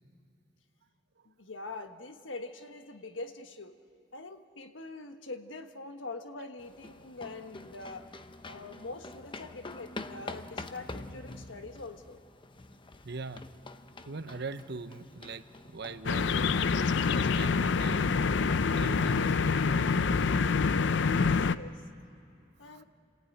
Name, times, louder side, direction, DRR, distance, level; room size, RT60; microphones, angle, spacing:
voice 1, 1.2-3.8 4.1-8.1 8.4-12.2 20.9-21.8 22.6-22.8, left 3 dB, 85° left, 7 dB, 1.4 m, -44 dB
sound 1, 6.6-18.4, left 2 dB, 25° left, 0.8 m, -47 dB
voice 2, 13.0-13.4 14.1-16.7 17.1-18.2 18.7-20.2 22.6-22.8, right 3 dB, 60° right, 11 dB, 0.9 m, -42 dB
sound 2, 16.0-21.5, left 5 dB, 70° left, 0.5 m, -26 dB
29.5 x 15.0 x 9.2 m, 2.8 s
head